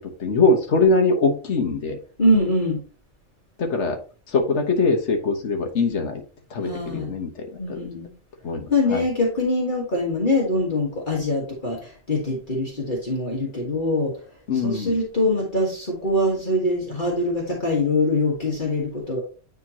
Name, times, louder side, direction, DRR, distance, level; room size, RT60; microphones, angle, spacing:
voice 1, 0.2-2.0 3.6-4.0 4.3-6.2 6.5-7.8 8.4-9.0 14.5-14.9, left 3 dB, 70° left, 3 dB, 1.5 m, -22 dB
voice 2, 2.2-2.8 6.6-7.1 7.6-8.1 8.7-14.1 14.6-19.2, left 1 dB, 40° left, -2 dB, 1.7 m, -23 dB
9.9 x 3.7 x 2.9 m, 0.38 s
omnidirectional pair, 1.2 m